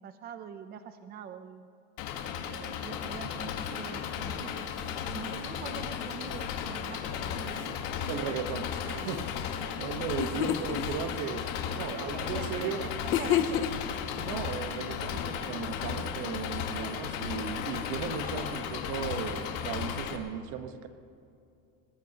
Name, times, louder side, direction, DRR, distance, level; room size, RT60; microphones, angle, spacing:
voice 1, 0.0-1.7 2.4-4.6 5.1-7.8 11.7-13.8, right 8 dB, 35° right, 9 dB, 0.6 m, -44 dB
Engine, 2.0-20.2, left 8 dB, 80° left, 1.5 m, -35 dB
voice 2, 8.1-11.5 11.7-12.8 14.1-20.9, right 7 dB, 75° right, 8 dB, 1.3 m, -36 dB
sound 1, 9.8-9.9 10.2-10.8 13.1-14.0, left 10 dB, 45° left, 0.7 m, -28 dB
21.0 x 20.0 x 3.0 m, 2.5 s
cardioid pair, 160°, 29 cm